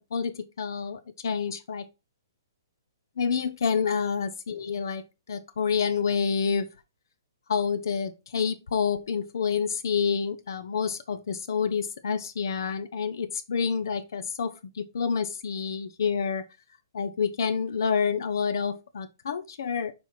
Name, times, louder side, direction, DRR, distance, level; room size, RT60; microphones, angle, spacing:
voice 1, 0.1-1.9 3.2-6.7 7.5-16.4 16.9-19.9, left 6 dB, 65° left, 0.8 m, -28 dB
5.6 x 4.3 x 4.7 m
hypercardioid pair, 170°, 2 cm